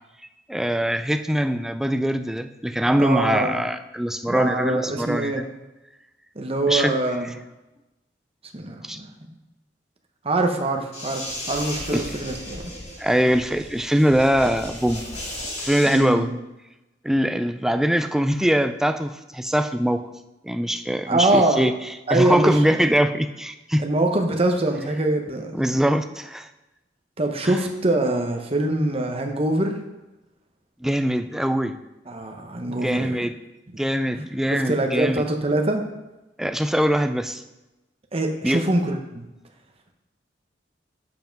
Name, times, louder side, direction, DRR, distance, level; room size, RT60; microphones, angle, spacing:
voice 1, 0.5-5.4 6.7-7.0 8.9-9.0 11.9-12.0 13.0-15.0 15.6-16.3 17.0-20.0 20.4-21.7 22.1-23.8 25.5-26.5 27.4-27.6 30.8-31.8 32.7-33.3 33.8-35.2 36.4-37.4 38.4-38.6, equal, 5° right, 9 dB, 0.3 m, -22 dB
voice 2, 3.0-3.6 4.3-5.4 6.3-7.3 8.5-9.1 10.2-12.7 15.9-16.3 21.1-21.6 22.1-22.9 23.8-25.6 27.2-29.8 32.1-33.2 33.7-33.8 34.5-35.8 38.1-39.3, right 2 dB, 30° right, 4 dB, 0.9 m, -24 dB
sound 1, 10.9-16.0, left 1 dB, 40° left, 3.0 m, -35 dB
7.0 x 5.7 x 5.2 m, 1.0 s
head